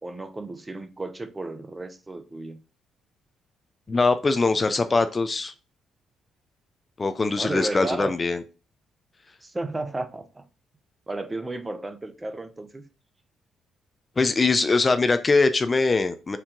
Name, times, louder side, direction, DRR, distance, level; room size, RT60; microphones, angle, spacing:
voice 1, 0.0-2.6 7.4-8.1 9.4-10.4 11.1-12.8, right 2 dB, 20° right, 0.6 m, -33 dB
voice 2, 3.9-5.5 7.0-8.4 14.2-16.4, left 3 dB, 30° left, 0.4 m, -22 dB
4.4 x 2.7 x 3.7 m
cardioid pair, 90°, 0 cm